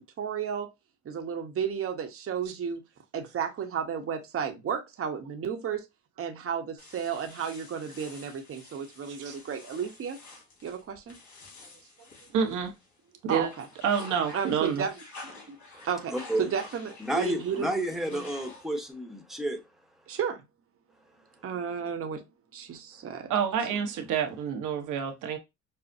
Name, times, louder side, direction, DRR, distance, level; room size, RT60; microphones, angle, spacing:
voice 1, 0.2-0.7 1.0-2.8 3.1-5.8 6.2-10.2 10.6-11.2 13.3-13.7 14.3-15.0 15.2-15.6 15.8-17.7 18.1-18.3 20.1-20.4 21.4-22.2 22.5-23.3, right 7 dB, 50° right, 0.9 m, -33 dB
sound 1, 6.8-13.0 13.3-18.9, left 2 dB, 70° left, 1.9 m, -49 dB
voice 2, 12.3-12.8 13.2-13.5 13.8-14.9 23.3-25.4, right 7 dB, 80° right, 1.0 m, -28 dB
voice 3, 15.7-16.5 17.0-19.7, right 1 dB, ahead, 1.0 m, -31 dB
5.5 x 2.1 x 2.6 m
cardioid pair, 90°, 30 cm